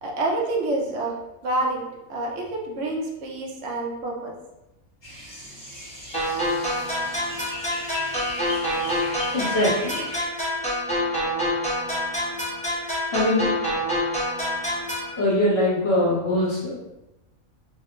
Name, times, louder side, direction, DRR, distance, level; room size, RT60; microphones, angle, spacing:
voice 1, 0.0-1.1 1.4-1.8 2.1-4.3 9.4-9.5, right 2 dB, 70° right, 0 dB, 0.9 m, -27 dB
sound 1, 5.0-10.3, left 1 dB, 30° left, 0.9 m, -38 dB
sound 2, 6.1-15.1, equal, 5° left, 0.6 m, -27 dB
voice 2, 9.0-10.0 13.1-13.5 15.2-16.8, left 1 dB, 55° left, -7 dB, 1.0 m, -22 dB
2.7 x 2.0 x 2.9 m, 0.96 s
omnidirectional pair, 1.4 m